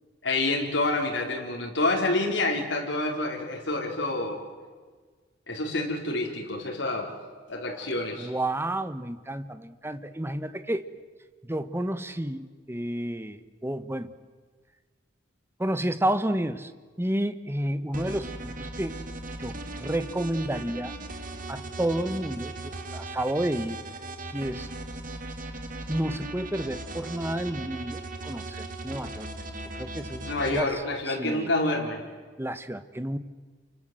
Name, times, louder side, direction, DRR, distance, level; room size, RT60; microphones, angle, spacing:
voice 1, 0.2-4.4 5.5-7.1 7.5-8.3 30.2-32.0, left 2 dB, 80° left, 0 dB, 4.5 m, -28 dB
voice 2, 8.2-10.8 11.4-14.1 15.6-16.7 17.0-19.0 19.4-20.9 21.5-23.8 24.3-24.7 25.9-29.3 29.7-31.5 32.4-33.2, right 1 dB, 15° right, 11 dB, 1.3 m, -31 dB
sound 1, 17.9-30.6, right 2 dB, 50° right, 2.6 m, -38 dB
29.5 x 25.0 x 7.8 m, 1.5 s
head